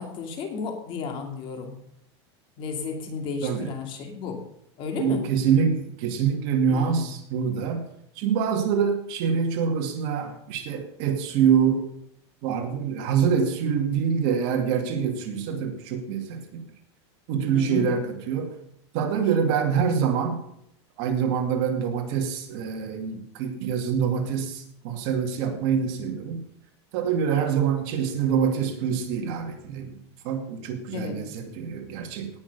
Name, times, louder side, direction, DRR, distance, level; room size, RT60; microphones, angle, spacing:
voice 1, 0.0-1.8 2.6-4.4 4.8-5.2 6.7-7.1 17.5-17.9 30.9-31.2, left 5 dB, 35° left, 4 dB, 2.6 m, -33 dB
voice 2, 5.0-7.8 8.2-11.8 12.4-16.6 17.3-18.6 18.9-20.4 21.0-26.4 26.9-30.0 30.2-32.3, right 7 dB, 45° right, 3 dB, 2.4 m, -25 dB
18.5 x 6.5 x 5.4 m, 0.73 s
supercardioid pair, 155°, 15 cm